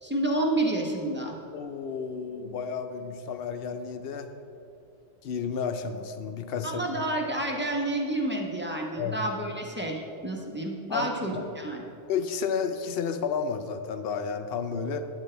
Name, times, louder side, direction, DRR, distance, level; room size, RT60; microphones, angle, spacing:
voice 1, 0.0-1.4 6.6-11.8, right 1 dB, 10° right, -1 dB, 1.2 m, -29 dB
voice 2, 1.5-4.3 5.2-6.8 9.0-9.2 10.9-11.4 12.1-15.0, left 6 dB, 65° left, 9 dB, 0.9 m, -31 dB
12.5 x 9.8 x 3.4 m, 2.8 s
omnidirectional pair, 1.1 m